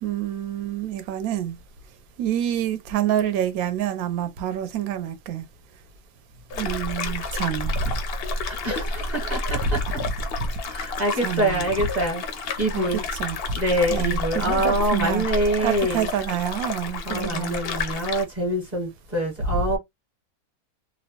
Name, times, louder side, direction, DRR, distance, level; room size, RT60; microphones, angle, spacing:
voice 1, 0.0-1.6 2.2-5.4 6.6-7.8 11.2-11.6 12.7-13.4 13.9-15.2 15.6-17.6, right 11 dB, 75° right, 1.0 m, -27 dB
sound 1, 6.5-18.2, left 3 dB, 65° left, 0.6 m, -30 dB
voice 2, 8.4-10.1 10.6-12.2 12.6-13.0 13.5-16.1 17.0-19.8, right 1 dB, 35° right, 1.0 m, -25 dB
2.8 x 2.0 x 2.8 m
omnidirectional pair, 1.5 m